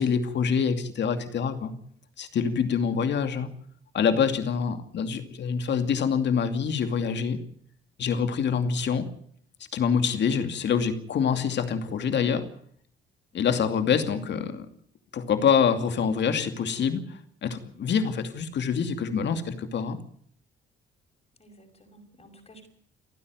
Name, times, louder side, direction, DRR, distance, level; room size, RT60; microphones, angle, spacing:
voice 1, 0.0-1.7 2.2-3.5 3.9-7.4 8.0-9.1 9.7-12.4 13.3-14.7 15.1-20.0, left 6 dB, 60° left, 8 dB, 2.5 m, -26 dB
voice 2, 21.4-22.7, right 1 dB, 30° left, 4 dB, 5.8 m, -54 dB
29.5 x 9.9 x 9.6 m, 0.63 s
cardioid pair, 90°, 20 cm